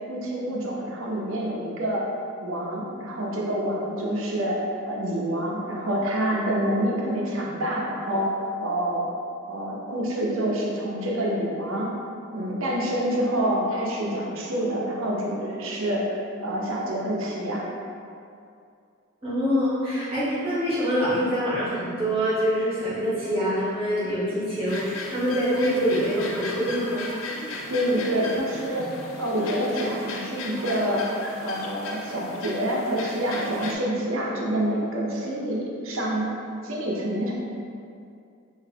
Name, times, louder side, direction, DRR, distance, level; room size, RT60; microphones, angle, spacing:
voice 1, 0.1-2.1 2.4-4.6 4.9-8.3 8.6-9.0 9.5-11.9 12.3-16.1 16.4-17.7 27.7-28.9 29.2-31.1 31.4-36.3 36.6-37.3, right 1 dB, 75° right, -3 dB, 0.6 m, -27 dB
voice 2, 19.2-27.1, equal, 25° right, -11 dB, 1.0 m, -25 dB
sound 1, 24.7-33.7, left 2 dB, 75° left, 0.4 m, -36 dB
3.9 x 2.6 x 2.8 m, 2.4 s
head